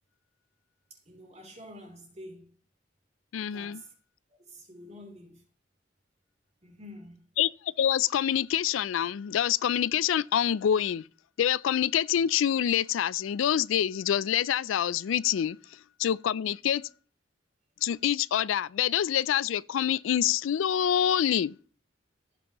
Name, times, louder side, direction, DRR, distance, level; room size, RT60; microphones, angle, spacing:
voice 1, 0.9-2.6 3.5-3.9 4.4-5.4 6.6-7.3, equal, 35° right, 3.2 m, -48 dB
voice 2, 3.3-3.8 7.4-7.5 7.8-11.0 11.4-15.6 16.0-16.8 17.8-21.5, left 9 dB, 80° left, 0.3 m, -26 dB
16.0 x 6.0 x 3.0 m
head